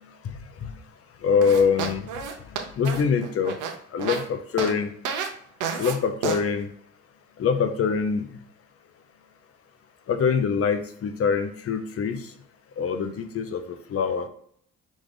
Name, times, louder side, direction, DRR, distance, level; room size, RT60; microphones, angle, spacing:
voice 1, 0.2-0.8 1.2-2.2 2.5-3.6 3.9-4.9 5.8-6.7 7.4-8.2 10.1-12.3 12.8-14.3, left 6 dB, 50° left, 8 dB, 0.7 m, -24 dB
sound 1, 1.4-4.2 4.6-4.7 5.0-5.3 5.6-5.9 6.2-6.4, right 6 dB, 85° right, 0.8 m, -30 dB
5.2 x 2.4 x 3.7 m, 0.64 s
cardioid pair, 90°, 30 cm